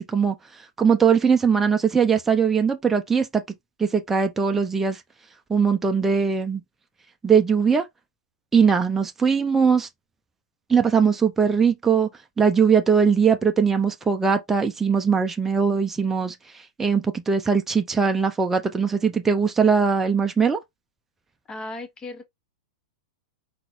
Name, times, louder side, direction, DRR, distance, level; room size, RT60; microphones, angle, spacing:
voice 1, 0.0-3.4 3.8-5.0 5.5-6.6 7.2-7.9 8.5-9.9 10.7-12.1 12.4-20.6, right 6 dB, 10° right, 0.6 m, -20 dB
voice 2, 21.5-22.2, left 2 dB, 20° left, 1.2 m, -35 dB
4.6 x 3.9 x 2.5 m
figure-of-eight pair, 100°, 3 cm